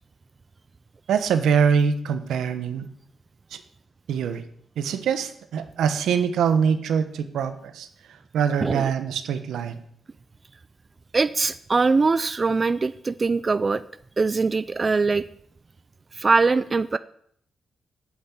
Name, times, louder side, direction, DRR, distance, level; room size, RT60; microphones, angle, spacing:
voice 1, 1.1-2.9 3.5-3.6 4.1-4.4 4.8-7.9 8.3-9.8, right 7 dB, 80° right, 9 dB, 1.1 m, -23 dB
voice 2, 8.6-8.9 11.1-13.8 14.2-15.2 16.1-17.0, right 4 dB, 40° right, 14 dB, 0.5 m, -22 dB
8.7 x 8.2 x 8.2 m, 0.66 s
supercardioid pair, 60°, 0 cm